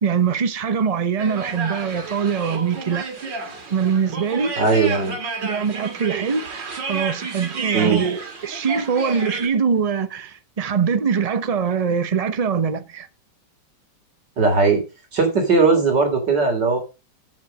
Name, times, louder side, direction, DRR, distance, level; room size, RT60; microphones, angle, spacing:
voice 1, 0.0-3.0 3.7-4.5 5.4-6.4 6.9-13.1, right 6 dB, 45° right, 0.4 m, -23 dB
sound 1, 1.2-9.5, right 4 dB, 90° right, 2.8 m, -31 dB
voice 2, 4.6-5.2 7.7-8.0 14.4-14.8 15.1-16.8, right 4 dB, 75° right, 3.7 m, -18 dB
7.6 x 7.3 x 6.3 m
omnidirectional pair, 1.9 m